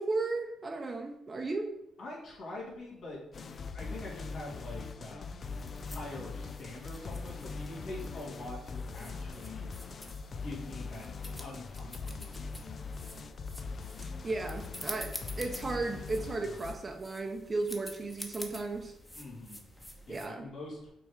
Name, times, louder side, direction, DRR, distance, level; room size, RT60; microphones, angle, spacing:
voice 1, 0.0-1.7 14.0-18.9 20.1-20.5, right 3 dB, 30° right, 4 dB, 0.6 m, -35 dB
voice 2, 2.0-3.2 3.7-5.5 5.8-9.7 10.3-11.1 11.4-13.6 19.1-20.9, left 2 dB, 65° left, -5 dB, 2.4 m, -45 dB
sound 1, 3.3-16.8, left 4 dB, 45° left, 0.4 m, -41 dB
sound 2, 5.4-20.3, left 1 dB, 10° left, 1.0 m, -48 dB
6.0 x 3.5 x 4.7 m, 0.82 s
cardioid pair, 90°, 0 cm